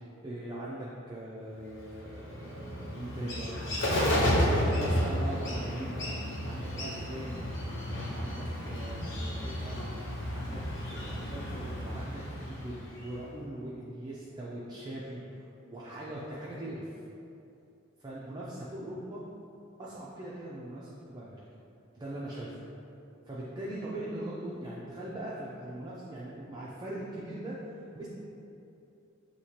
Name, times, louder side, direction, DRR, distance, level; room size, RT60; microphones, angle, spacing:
voice 1, 0.2-3.7 4.3-6.1 6.5-7.5 7.9-9.9 10.3-17.0 18.0-19.2 19.8-21.4 21.9-22.6 23.3-27.6 27.9-28.1, right 1 dB, 20° right, -7 dB, 0.4 m, -41 dB
Bird, 1.7-13.2, equal, 65° left, 0.9 m, -32 dB
6.0 x 2.8 x 2.8 m, 2.7 s
head